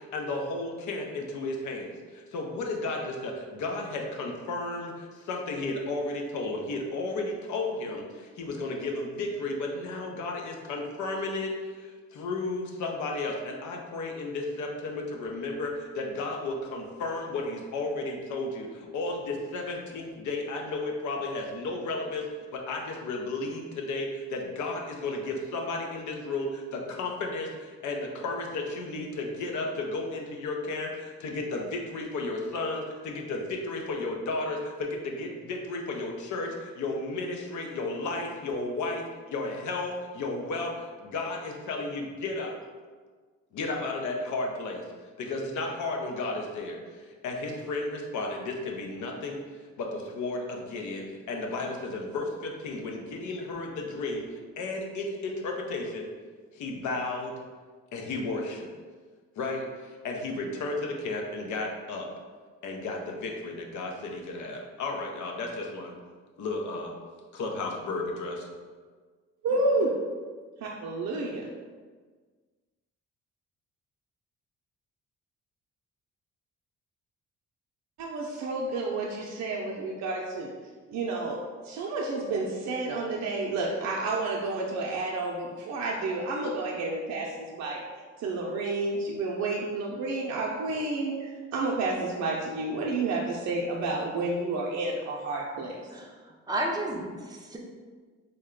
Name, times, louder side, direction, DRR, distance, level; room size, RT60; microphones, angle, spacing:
voice 1, 0.0-42.5 43.5-44.8 45.2-49.4 49.8-54.3 54.6-56.1 56.5-57.3 57.9-58.7 59.4-62.1 62.6-65.9 66.4-66.9 67.3-68.5, left 2 dB, 75° left, 1 dB, 0.7 m, -33 dB
voice 2, 69.4-69.9 70.6-71.5 78.0-80.5 80.9-81.4 81.6-87.8 88.2-95.8, right 2 dB, 65° right, -2 dB, 0.5 m, -30 dB
voice 3, 95.9-96.2 96.5-97.6, right 1 dB, 15° right, 0 dB, 0.5 m, -32 dB
3.3 x 2.1 x 3.7 m, 1.5 s
cardioid pair, 90°, 30 cm